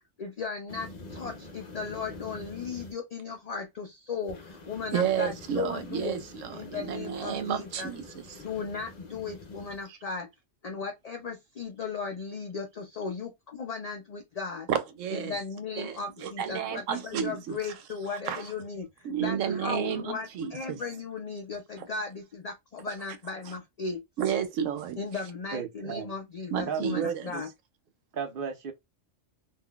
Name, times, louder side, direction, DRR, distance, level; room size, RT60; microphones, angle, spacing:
voice 1, 0.2-6.2 6.5-7.9 8.4-10.3 10.6-14.7 15.1-24.0 25.0-27.5, left 5 dB, 60° left, 0.4 m, -36 dB
sound 1, 0.7-2.9 4.3-9.8, left 2 dB, 40° left, 0.9 m, -46 dB
voice 2, 4.9-8.4 14.7-15.3 15.8-17.6 18.3-18.5 19.0-20.8 24.2-25.0 26.5-27.3, right 8 dB, 90° right, 1.0 m, -31 dB
voice 3, 25.5-26.1 26.6-27.5 28.1-28.7, right 7 dB, 55° right, 0.7 m, -34 dB
3.7 x 2.6 x 2.3 m
omnidirectional pair, 1.3 m